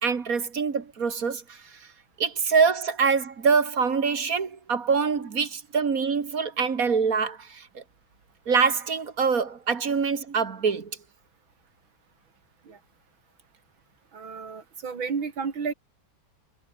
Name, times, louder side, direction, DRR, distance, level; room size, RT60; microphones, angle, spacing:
voice 1, 0.0-1.6 2.2-7.8 8.5-10.9, right 5 dB, 45° right, 2.2 m, -25 dB
voice 2, 14.1-15.7, right 5 dB, 85° right, 3.6 m, -32 dB
omnidirectional pair, 2.1 m